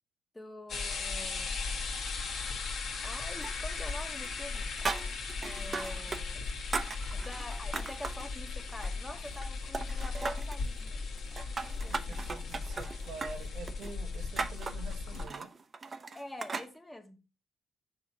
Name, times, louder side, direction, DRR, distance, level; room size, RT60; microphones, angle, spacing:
voice 1, 0.3-1.6 3.0-4.7 5.4-6.5 7.1-11.0 11.8-12.3 16.1-17.2, left 1 dB, 10° left, 1.1 m, -45 dB
sound 1, 0.7-15.2, left 4 dB, 65° left, 1.8 m, -37 dB
sound 2, 3.4-4.0 4.2-6.2 6.5-8.3 8.7-9.5 9.7-10.6 11.2-16.7, right 4 dB, 35° right, 0.6 m, -38 dB
voice 2, 11.9-15.5, right 4 dB, 80° right, 1.4 m, -46 dB
7.0 x 2.9 x 5.8 m
cardioid pair, 90°, 0 cm